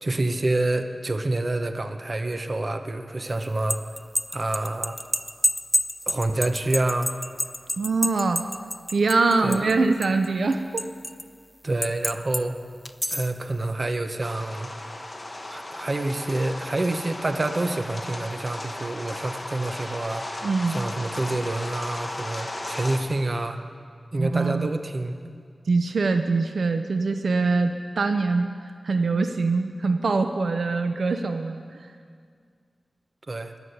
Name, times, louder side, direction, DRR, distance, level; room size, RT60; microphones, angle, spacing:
voice 1, 0.0-3.8 4.3-5.0 6.1-7.1 9.4-9.7 11.6-12.6 13.1-14.7 15.5-20.2 20.7-23.6 24.1-25.2 33.3-33.5, right 2 dB, 40° right, 7 dB, 0.9 m, -27 dB
sound 1, 3.4-9.7 10.0-11.2 11.8-12.4 12.8-13.4, equal, 5° left, 0.4 m, -28 dB
voice 2, 7.8-8.5 8.9-10.9 20.4-20.8 24.2-24.7 25.7-28.5 28.8-31.6, right 3 dB, 75° right, 7 dB, 0.6 m, -23 dB
sound 2, 14.2-23.0, left 1 dB, 25° left, 1.4 m, -36 dB
21.0 x 7.2 x 8.0 m, 2.1 s
wide cardioid pair, 105°, 0 cm